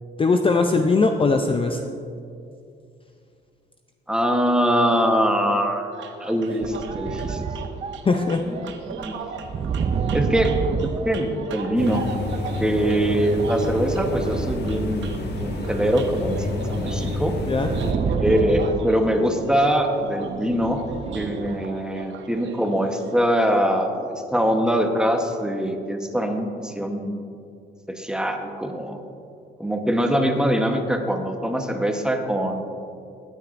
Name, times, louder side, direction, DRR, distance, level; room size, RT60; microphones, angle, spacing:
voice 1, 0.2-1.8 8.0-8.4 17.5-17.7, left 3 dB, 25° left, 5 dB, 0.5 m, -20 dB
voice 2, 4.1-5.9 6.2-7.5 8.5-8.6 8.9-9.2 10.1-10.5 10.8-12.0 12.6-17.4 18.0-20.8 21.1-27.2 27.9-29.0 29.6-32.6, equal, 5° right, 4 dB, 1.1 m, -23 dB
sound 1, 5.9-23.2, right 5 dB, 70° right, 0.9 m, -38 dB
sound 2, 6.6-12.0 12.7-21.6, right 5 dB, 30° right, 0.4 m, -30 dB
sound 3, 11.8-17.9, left 2 dB, 55° left, 1.3 m, -29 dB
16.0 x 9.3 x 2.6 m, 2.5 s
cardioid pair, 90°, 20 cm